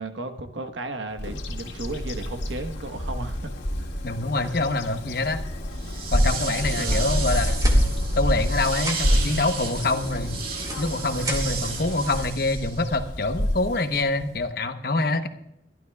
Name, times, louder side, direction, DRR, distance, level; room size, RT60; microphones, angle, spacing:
voice 1, 0.0-3.5 3.8-3.9 4.4-4.6 6.5-7.3, right 2 dB, 85° right, 7 dB, 1.2 m, -35 dB
Bird vocalization bird call bird song, 1.2-14.4, equal, 75° left, 2.2 m, -27 dB
voice 2, 4.0-5.4 6.1-7.7 8.1-10.4 10.8-15.3, left 2 dB, 55° left, 8 dB, 1.0 m, -25 dB
sound 1, 5.7-13.0, right 5 dB, 50° right, 2.3 m, -34 dB
sound 2, 7.1-8.5 8.7-9.3 10.1-11.8, right 1 dB, 20° right, 2.1 m, -36 dB
23.0 x 12.5 x 2.3 m, 0.80 s
head